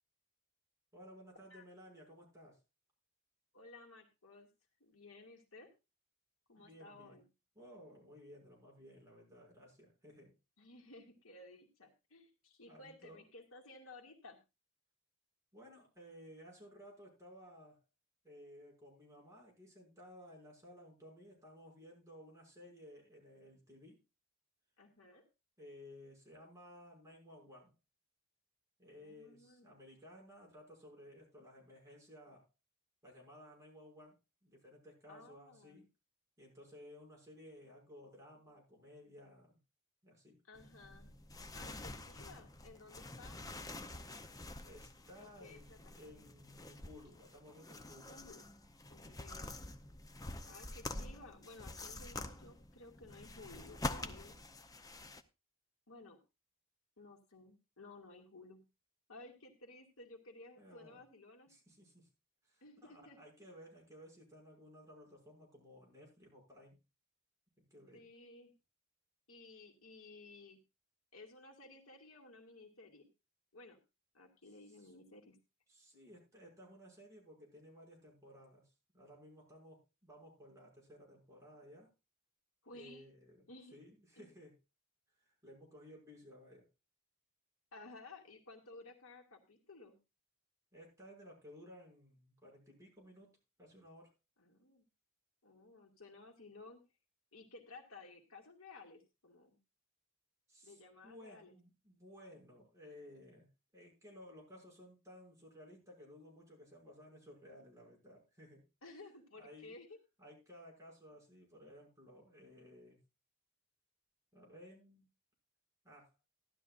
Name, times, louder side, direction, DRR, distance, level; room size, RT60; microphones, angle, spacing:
voice 1, 0.9-2.6 6.6-7.2 7.6-10.4 12.7-13.3 15.5-17.8 18.2-24.0 25.6-27.7 28.8-32.5 33.0-34.1 34.4-35.9 36.4-39.6 40.0-40.4 44.6-48.2 49.0-49.2 60.6-61.0 61.5-62.1 62.4-66.8 67.6-68.0 74.8-74.9 75.7-81.9 82.7-83.4 83.7-84.6 85.2-86.7 90.7-94.1 100.5-108.6 109.4-109.8 110.2-113.0 114.3-115.1 115.8-116.1, equal, 15° right, -2 dB, 6.2 m, -57 dB
voice 2, 3.5-4.5 4.8-5.7 6.5-7.3 10.6-14.4 24.8-25.2 29.0-29.7 35.1-35.8 40.4-41.1 41.5-43.4 45.2-46.3 48.1-48.5 48.9-49.5 50.4-54.4 55.9-56.2 57.0-58.6 59.1-61.5 62.6-63.2 67.9-68.5 69.3-70.6 71.1-73.1 73.5-73.8 74.1-75.4 82.6-83.1 83.5-83.8 84.2-84.3 87.7-90.0 94.4-94.8 95.4-96.8 97.3-99.6 100.6-101.6 108.8-110.0, left 2 dB, 70° left, 2 dB, 2.3 m, -56 dB
sound 1, 40.5-55.2, left 2 dB, 15° left, 0.7 m, -47 dB
15.5 x 12.0 x 2.5 m, 0.26 s
head